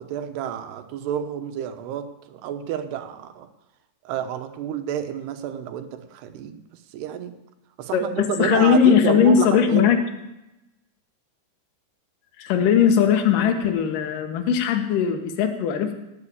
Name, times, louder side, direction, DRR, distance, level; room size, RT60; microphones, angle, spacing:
voice 1, 0.0-3.5 4.0-6.6 6.9-7.3 7.8-9.9, right 9 dB, 80° right, 8 dB, 3.2 m, -29 dB
voice 2, 7.9-10.0 12.4-15.9, left 8 dB, 65° left, 5 dB, 2.9 m, -19 dB
18.5 x 7.7 x 8.6 m, 0.94 s
omnidirectional pair, 4.7 m